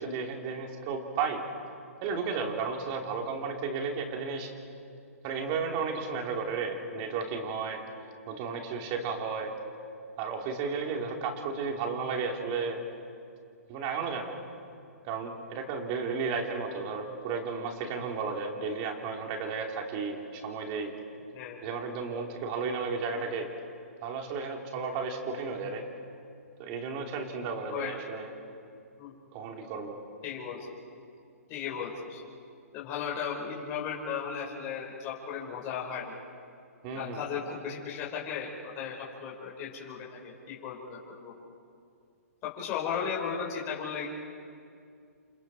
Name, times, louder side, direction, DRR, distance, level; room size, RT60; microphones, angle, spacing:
voice 1, 0.0-1.4 2.0-4.5 5.2-7.8 8.3-9.5 10.2-12.8 13.7-14.3 15.1-20.9 21.6-23.5 24.0-25.8 26.6-28.3 29.3-30.0 36.8-37.2, right 5 dB, 35° right, 2 dB, 3.6 m, -33 dB
voice 2, 30.2-30.6 31.5-32.2 32.7-36.1 36.9-41.3 42.4-44.1, left 7 dB, 30° left, -4 dB, 4.9 m, -36 dB
29.0 x 27.5 x 4.5 m, 2.4 s
hypercardioid pair, 135°, 8 cm